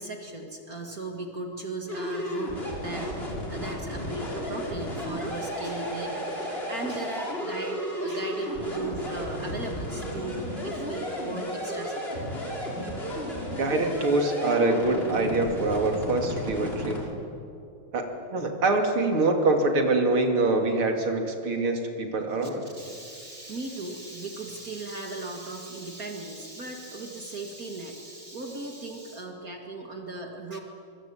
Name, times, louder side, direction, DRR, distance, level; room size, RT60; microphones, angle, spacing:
voice 1, 0.0-3.2 3.5-12.3 22.4-30.6, right 2 dB, 45° right, 2 dB, 2.4 m, -37 dB
sound 1, 1.9-17.0, equal, 25° left, 5.5 m, -33 dB
voice 2, 13.6-17.0 17.9-22.7, right 2 dB, 80° right, 3 dB, 3.6 m, -25 dB
25.0 x 24.0 x 8.7 m, 2.6 s
omnidirectional pair, 2.3 m